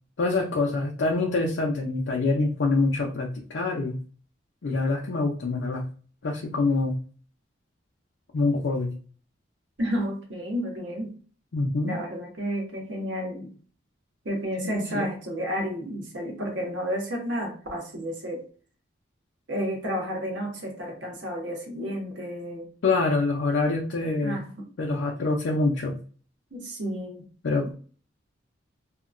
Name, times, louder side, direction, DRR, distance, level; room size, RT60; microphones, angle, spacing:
voice 1, 0.2-4.0 4.6-5.8 6.2-6.9 8.3-8.9 11.5-12.0 14.6-15.1 22.8-24.4 24.8-25.9 27.4-27.7, left 3 dB, 65° left, 0 dB, 0.5 m, -25 dB
voice 2, 9.8-11.1 11.8-13.5 14.2-18.5 19.5-22.7 24.2-24.7 26.5-27.3 27.6-27.7, equal, 70° right, 1 dB, 0.9 m, -31 dB
2.8 x 2.1 x 2.4 m, 0.40 s
head